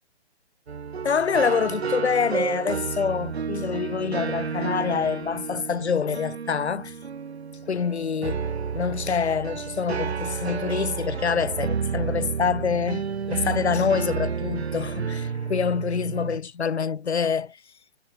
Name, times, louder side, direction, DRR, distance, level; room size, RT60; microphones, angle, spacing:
sound 1, 0.7-16.4, right 6 dB, 70° right, 2.4 m, -31 dB
voice 1, 1.0-6.9 7.7-17.6, left 6 dB, 75° left, 1.5 m, -26 dB
hypercardioid pair, 150°, 33 cm